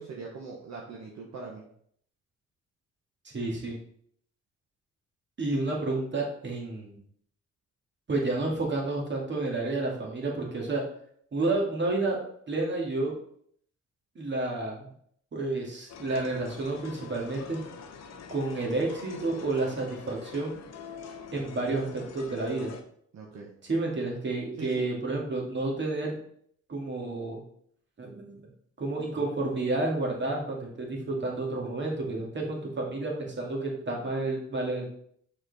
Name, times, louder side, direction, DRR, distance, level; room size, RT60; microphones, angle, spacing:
voice 1, 0.0-1.6 23.1-23.5 24.6-24.9, right 4 dB, 60° right, -1 dB, 1.3 m, -41 dB
voice 2, 3.2-3.8 5.4-7.0 8.1-10.8 11.3-12.2 12.5-13.1 14.2-14.9 15.3-17.6 18.3-20.6 21.3-22.7 23.6-26.2 26.7-27.4 28.0-28.3 28.8-34.9, right 2 dB, 40° right, -1 dB, 2.2 m, -30 dB
sound 1, 15.9-22.8, left 6 dB, 60° left, 0.9 m, -45 dB
6.4 x 4.4 x 4.1 m, 0.65 s
cardioid pair, 90°, 30 cm